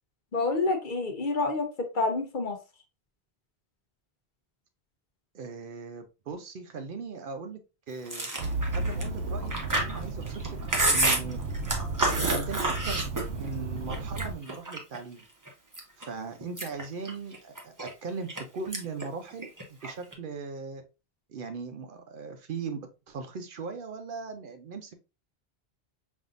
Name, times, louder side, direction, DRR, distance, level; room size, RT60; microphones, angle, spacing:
voice 1, 0.3-2.6, left 3 dB, 55° left, 5 dB, 0.8 m, -28 dB
voice 2, 5.3-7.6 7.9-8.3 8.7-10.5 10.9-11.4 12.0-13.1 13.3-15.3 16.0-17.7 18.0-20.8 21.3-25.0, right 5 dB, 60° right, 7 dB, 0.7 m, -39 dB
Chewing mastication, 8.1-13.5 13.9-15.0 15.5-16.0 16.4-18.4 18.7-19.0 19.3-20.1, right 2 dB, 20° right, 0.7 m, -29 dB
sound 1, 8.4-14.3, right 3 dB, 85° right, 0.9 m, -33 dB
5.3 x 2.6 x 2.5 m, 0.29 s
omnidirectional pair, 1.1 m